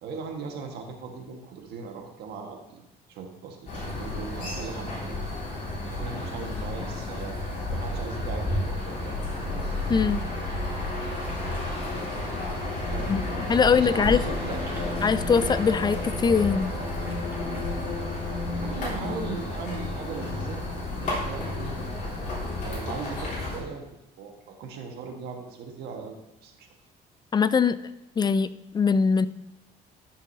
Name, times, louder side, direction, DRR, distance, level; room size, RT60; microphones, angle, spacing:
voice 1, 0.0-2.8 3.1-5.2 5.9-7.4 7.7-9.2 12.7-15.0 18.5-20.6 21.0-21.7 22.6-26.2 26.4-26.7, right 5 dB, 75° right, 3 dB, 1.6 m, -38 dB
sound 1, 3.7-23.6, left 2 dB, 45° left, 3.4 m, -31 dB
voice 2, 9.9-10.2 13.1-14.2 15.0-16.7 27.3-27.8 28.2-29.3, left 5 dB, 25° left, 15 dB, 0.3 m, -22 dB
sound 2, 11.1-18.0, left 1 dB, 10° right, 2.6 m, -40 dB
13.0 x 6.3 x 2.8 m, 0.94 s
cardioid pair, 110°, 17 cm